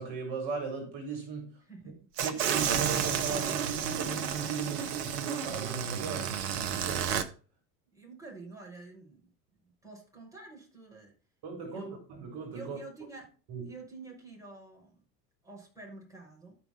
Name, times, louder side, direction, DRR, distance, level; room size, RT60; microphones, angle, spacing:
voice 1, 0.0-1.6 2.2-7.1 11.4-12.8 13.5-13.7, right 5 dB, 50° right, 3.6 m, -38 dB
voice 2, 1.6-2.1 7.9-9.3 9.6-11.1 11.7-12.0 12.5-13.3 13.6-15.0 15.4-16.6, right 3 dB, 5° right, 6.4 m, -48 dB
sound 1, 2.2-7.2, right 8 dB, 65° right, 1.3 m, -31 dB
12.5 x 5.9 x 4.2 m
hypercardioid pair, 80°, 50 cm